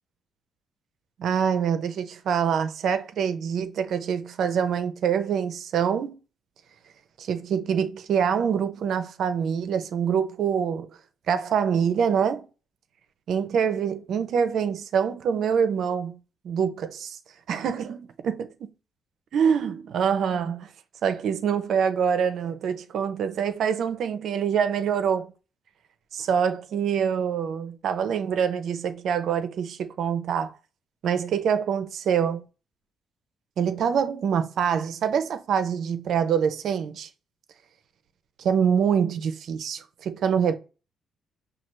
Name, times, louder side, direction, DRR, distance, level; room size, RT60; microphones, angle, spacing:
voice 1, 1.2-6.2 7.2-10.9 11.3-12.5 13.3-16.2 16.4-17.2 17.5-18.3 19.3-20.7 21.0-25.3 26.1-30.5 31.0-32.4 33.6-37.1 38.4-40.6, right 7 dB, 70° right, 0.6 m, -25 dB
5.9 x 2.4 x 3.2 m
cardioid pair, 90°, 0 cm